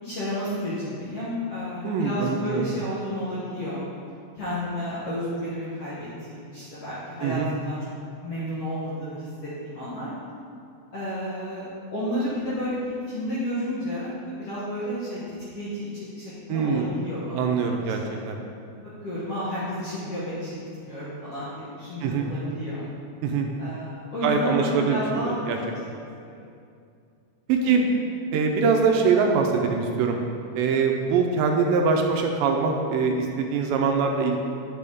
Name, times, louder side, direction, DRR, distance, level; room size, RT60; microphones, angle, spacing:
voice 1, 0.0-3.8 4.3-7.8 8.2-10.1 10.9-17.7 18.0-18.2 19.0-22.8 23.6-25.3 26.2-26.4 27.6-27.8, equal, 60° left, -9 dB, 1.6 m, -31 dB
voice 2, 1.8-2.7 7.2-7.5 16.5-16.9 17.3-18.4 22.0-22.3 23.2-23.5 24.2-25.0 25.3-25.6 27.5-27.9 28.3-30.2 30.5-34.4, right 5 dB, 80° right, 2 dB, 2.2 m, -23 dB
8.3 x 6.8 x 3.5 m, 2.4 s
omnidirectional pair, 4.3 m